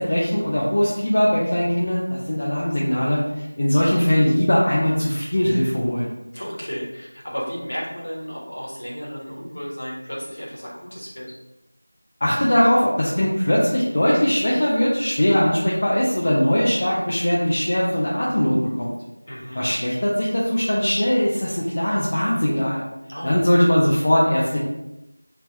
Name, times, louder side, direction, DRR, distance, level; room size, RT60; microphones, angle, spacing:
voice 1, 0.0-6.1 12.2-18.9 19.6-22.8 23.2-24.6, equal, 25° left, -6 dB, 0.4 m, -20 dB
voice 2, 6.3-11.3 19.3-19.7 23.1-23.3, equal, 50° left, -4 dB, 1.4 m, -33 dB
3.4 x 2.9 x 4.4 m, 0.95 s
figure-of-eight pair, 180°, 0 cm